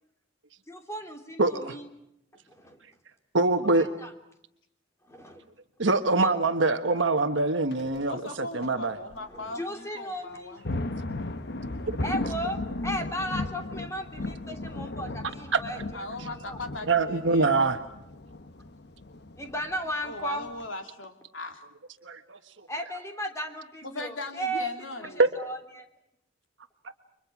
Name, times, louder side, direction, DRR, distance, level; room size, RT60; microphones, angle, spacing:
voice 1, 0.7-1.9 2.5-2.8 3.7-4.1 5.0-5.5 6.1-6.3 9.1-10.6 12.0-16.6 19.4-20.5 22.7-25.9, equal, 15° left, 4 dB, 3.0 m, -36 dB
voice 2, 1.4-1.7 3.3-3.9 5.8-9.0 16.9-17.8 22.0-22.2 25.2-25.3, right 3 dB, 70° right, 6 dB, 1.4 m, -24 dB
sound 1, 7.7-8.0 8.6-8.7 9.1-9.2 10.3-20.7, left 2 dB, 60° left, 1.1 m, -36 dB
voice 3, 8.1-10.6 15.9-17.7 20.0-21.6 23.8-25.2, left 2 dB, 90° left, 5 dB, 3.2 m, -39 dB
30.0 x 24.5 x 6.0 m, 0.79 s
head